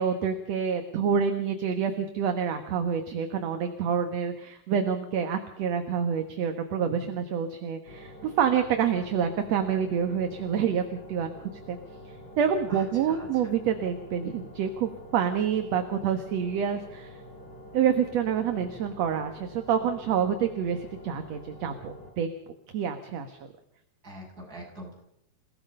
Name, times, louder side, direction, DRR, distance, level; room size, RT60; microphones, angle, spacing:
voice 1, 0.0-11.3 11.7-11.8 12.4-17.2 17.7-22.3 22.7-23.4, right 7 dB, 60° right, 6 dB, 2.4 m, -27 dB
sound 1, 7.9-22.1, left 1 dB, 35° left, 4.3 m, -47 dB
voice 2, 12.7-13.5 18.5-18.8 24.0-25.0, equal, 25° right, -2 dB, 8.2 m, -45 dB
29.0 x 17.5 x 5.5 m, 0.74 s
omnidirectional pair, 3.7 m